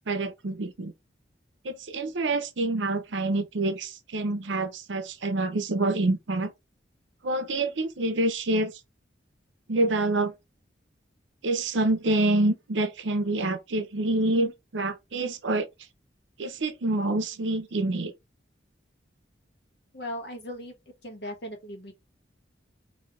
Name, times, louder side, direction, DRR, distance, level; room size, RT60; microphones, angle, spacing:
voice 1, 0.1-0.9 1.6-6.5 7.2-8.7 9.7-10.3 11.4-15.7 16.4-18.1, right 2 dB, 85° right, 0.7 m, -27 dB
voice 2, 19.9-20.7 21.0-21.9, equal, 65° left, 1.2 m, -37 dB
3.2 x 2.7 x 3.6 m
head